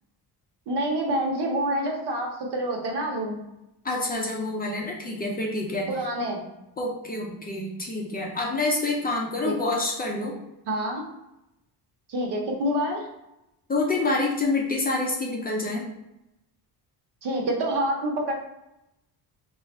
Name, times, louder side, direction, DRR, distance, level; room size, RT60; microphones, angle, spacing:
voice 1, 0.7-3.4 5.9-6.4 9.4-9.5 10.7-11.0 12.1-13.1 17.2-18.3, right 1 dB, 75° right, 0 dB, 1.0 m, -27 dB
voice 2, 3.8-5.9 6.8-10.4 13.7-15.9, left 2 dB, 25° left, -1 dB, 0.4 m, -27 dB
3.4 x 2.4 x 4.2 m, 0.88 s
cardioid pair, 170°, 40 cm